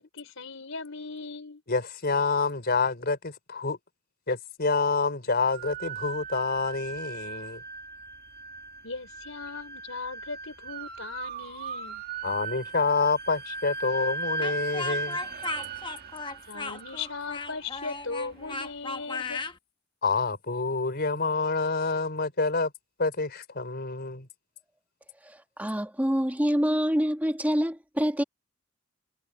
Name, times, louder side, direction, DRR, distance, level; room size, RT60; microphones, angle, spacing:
voice 1, 0.0-1.6 8.8-12.0 16.5-19.4, left 4 dB, 80° left, 4.6 m, -38 dB
voice 2, 1.7-3.8 4.3-7.6 12.2-15.2 20.0-22.7 23.0-24.3, left 4 dB, 55° left, 4.1 m, -27 dB
sound 1, 5.5-18.6, right 4 dB, 50° right, 2.3 m, -38 dB
Speech, 14.4-19.6, left 4 dB, 25° left, 1.0 m, -36 dB
voice 3, 25.2-28.2, equal, 10° right, 1.5 m, -26 dB
head